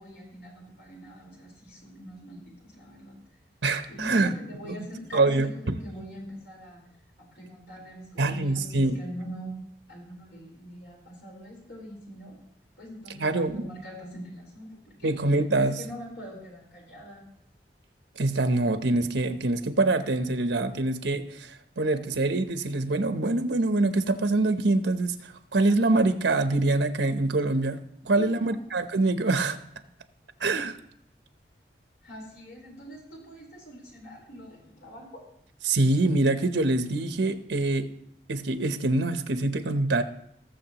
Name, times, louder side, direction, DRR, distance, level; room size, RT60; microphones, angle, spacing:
voice 1, 0.0-3.2 3.9-6.8 7.2-9.5 9.9-12.4 12.8-15.1 15.6-17.2 28.2-28.6 32.0-35.2, equal, 75° left, -2 dB, 4.2 m, -43 dB
voice 2, 3.6-4.3 4.6-4.7 5.1-5.5 8.2-9.0 13.2-13.6 15.0-15.7 18.2-29.6 30.4-30.8 35.6-37.9 38.3-40.0, right 2 dB, 85° right, 9 dB, 0.8 m, -25 dB
19.0 x 7.0 x 3.0 m, 0.72 s
head